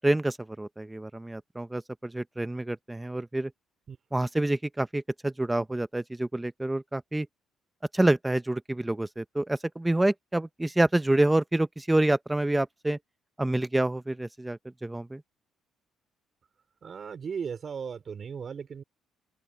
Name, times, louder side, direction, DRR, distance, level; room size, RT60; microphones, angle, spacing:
voice 1, 0.0-3.5 4.1-7.3 7.9-13.0 13.4-15.2, right 1 dB, 10° right, 0.9 m, -27 dB
voice 2, 16.8-18.8, right 6 dB, 40° right, 4.2 m, -36 dB
open air
cardioid pair, 115°, 0 cm